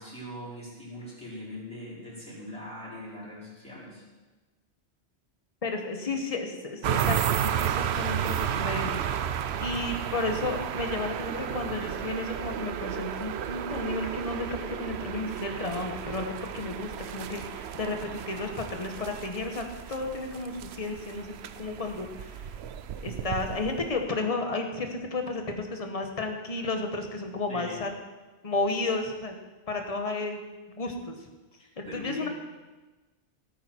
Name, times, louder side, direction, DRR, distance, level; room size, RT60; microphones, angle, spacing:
voice 1, 0.0-4.0 27.5-27.8 31.6-32.3, equal, 5° left, -9 dB, 5.5 m, -41 dB
voice 2, 5.6-9.0 9.2-22.4 23.0-27.9 28.4-29.3 29.7-30.4 30.8-31.2 31.8-32.3, left 3 dB, 30° left, 4 dB, 1.3 m, -32 dB
sound 1, 6.8-24.1, right 9 dB, 70° right, 0.9 m, -33 dB
17.5 x 9.1 x 4.5 m, 1.2 s
omnidirectional pair, 1.2 m